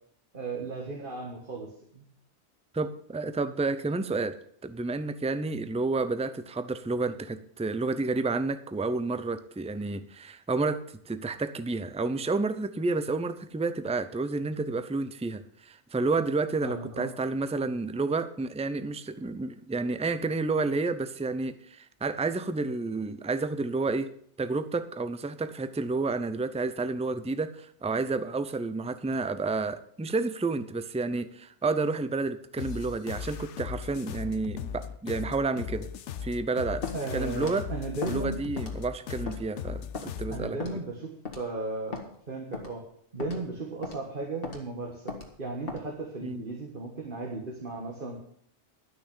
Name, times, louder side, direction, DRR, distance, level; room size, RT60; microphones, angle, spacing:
voice 1, 0.3-2.0 16.6-17.1 36.9-38.4 40.3-42.8 43.1-48.2, right 2 dB, 50° right, 0 dB, 1.9 m, -36 dB
voice 2, 2.7-4.4 4.6-24.1 24.4-35.9 36.2-36.9 37.1-37.7 38.1-40.6 46.2-46.4, right 3 dB, 10° right, 12 dB, 0.4 m, -30 dB
sound 1, 32.6-40.5, left 7 dB, 80° left, 1.0 m, -38 dB
Walk footsteps, 36.8-37.0 37.4-37.6 38.0-38.2 38.6-38.9 39.3-39.4 39.9-40.1 40.6-40.8 41.3-41.5 41.9-42.1 42.5-42.7 43.2-43.4 43.8-44.0 44.4-44.6 45.1-45.3 45.7-45.8, left 5 dB, 55° left, 2.2 m, -37 dB
12.0 x 6.4 x 8.5 m, 0.63 s
omnidirectional pair, 1.2 m